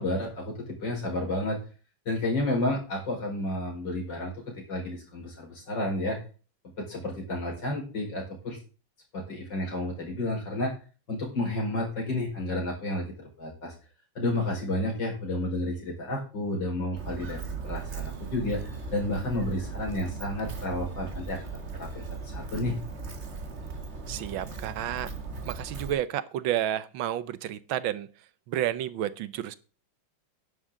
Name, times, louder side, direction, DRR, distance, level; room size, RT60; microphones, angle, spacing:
voice 1, 0.0-1.6 2.1-6.2 6.8-8.6 9.1-10.7 11.1-13.7 14.2-21.4 21.8-22.7, left 1 dB, 60° left, -1 dB, 5.3 m, -31 dB
Walk footsteps, 17.0-25.9, right 4 dB, 35° right, 1.7 m, -38 dB
voice 2, 24.1-25.1 25.4-28.1 28.5-29.6, right 11 dB, 75° right, 15 dB, 1.5 m, -31 dB
11.0 x 10.5 x 3.8 m, 0.36 s
omnidirectional pair, 2.2 m